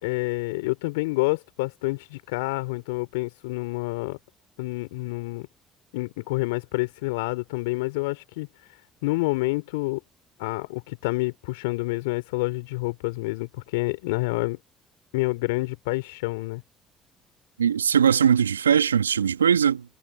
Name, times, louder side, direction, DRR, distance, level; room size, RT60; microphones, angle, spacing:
voice 1, 0.0-4.2 4.6-5.5 5.9-8.5 9.0-10.0 10.4-14.6 15.1-16.6, left 24 dB, 75° left, 3.6 m, -28 dB
voice 2, 17.6-19.8, right 8 dB, 85° right, 1.9 m, -20 dB
figure-of-eight pair, 50°, 0 cm